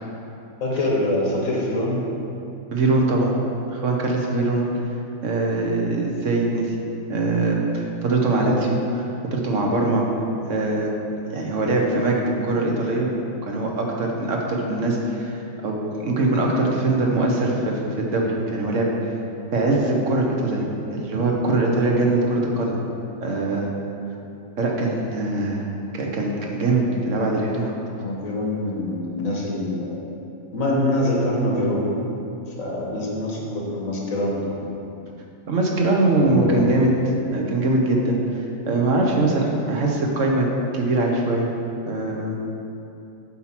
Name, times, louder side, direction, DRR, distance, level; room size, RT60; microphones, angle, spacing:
voice 1, 0.6-2.0 27.9-30.0 30.5-31.9 32.6-34.7 36.2-36.8 39.4-39.7, left 1 dB, 80° left, -3 dB, 1.7 m, -24 dB
voice 2, 2.7-3.3 3.7-4.6 5.2-6.7 7.1-10.0 10.5-10.9 11.3-13.1 13.4-18.9 19.5-20.6 20.9-22.7 23.2-23.7 24.6-25.6 25.9-27.7 35.5-36.9 37.3-41.5 41.9-42.3, right 2 dB, 65° right, -1 dB, 1.3 m, -22 dB
8.0 x 4.4 x 5.9 m, 2.7 s
omnidirectional pair, 1.4 m